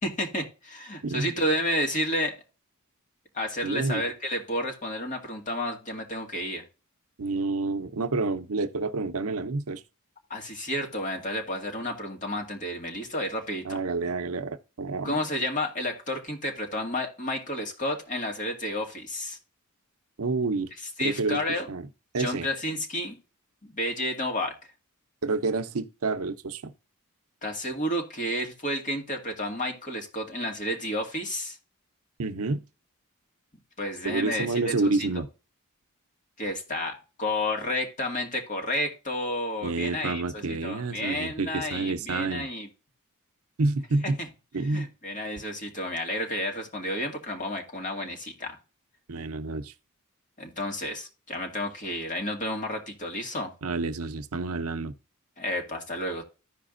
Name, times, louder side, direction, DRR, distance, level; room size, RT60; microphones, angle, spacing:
voice 1, 0.0-2.4 3.3-6.7 10.3-13.8 15.0-19.4 21.0-21.7 22.2-23.2 23.6-24.6 27.4-31.6 33.8-34.9 36.4-42.7 44.2-44.3 44.7-48.6 50.4-53.5 55.4-56.2, left 1 dB, 35° left, 2.1 m, -31 dB
voice 2, 3.6-4.0 7.2-9.8 13.6-15.1 20.2-20.7 21.0-21.4 21.7-21.8 22.1-22.5 25.2-26.7 32.2-32.6 34.0-35.3 39.6-42.5 43.6-44.2 44.5-44.9 49.1-49.7 53.6-54.9, right 3 dB, 75° right, 0.7 m, -28 dB
15.0 x 5.0 x 2.5 m
head